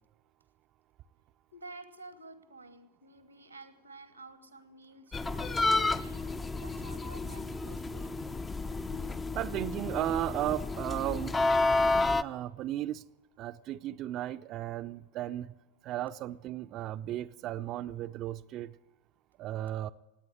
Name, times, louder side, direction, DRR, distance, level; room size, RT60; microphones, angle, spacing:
voice 1, 1.5-6.2 6.6-8.1 8.9-9.1, right 2 dB, 85° right, 1.2 m, -51 dB
sound 1, 5.1-12.2, left 3 dB, 15° left, 0.5 m, -30 dB
voice 2, 9.4-11.3 12.2-13.0 13.4-15.5 15.8-18.7 19.4-19.9, right 13 dB, 35° right, 0.5 m, -35 dB
18.5 x 9.0 x 8.1 m
figure-of-eight pair, 90°, 0 cm